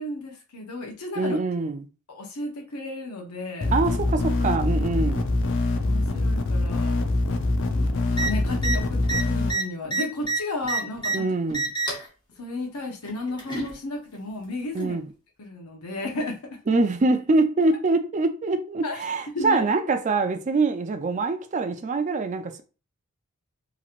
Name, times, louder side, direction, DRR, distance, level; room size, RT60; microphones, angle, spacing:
voice 1, 0.0-1.4 2.1-3.7 5.8-7.0 7.7-11.3 12.4-15.0 15.4-16.4 18.8-19.0 19.3-19.6, left 2 dB, 80° left, 0.8 m, -33 dB
voice 2, 1.2-1.9 3.7-5.3 11.1-11.7 14.7-15.1 16.7-22.6, right 3 dB, 35° right, 0.4 m, -24 dB
sound 1, 3.6-9.5, left 2 dB, 55° left, 0.5 m, -24 dB
sound 2, 8.1-8.3 8.6-8.8 9.0-11.2 11.5-12.1 13.0-13.7 14.8-14.9, right 3 dB, 20° left, 0.8 m, -27 dB
2.9 x 2.9 x 2.4 m
head